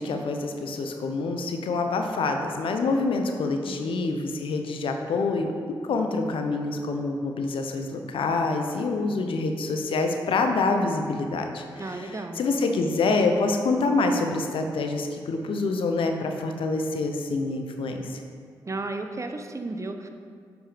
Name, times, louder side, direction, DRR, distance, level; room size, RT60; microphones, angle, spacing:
voice 1, 0.0-18.2, left 3 dB, 70° left, 5 dB, 0.8 m, -26 dB
voice 2, 11.8-12.4 18.7-20.1, right 2 dB, 35° right, 5 dB, 0.8 m, -34 dB
7.3 x 6.0 x 5.2 m, 2.1 s
supercardioid pair, 40°, 9 cm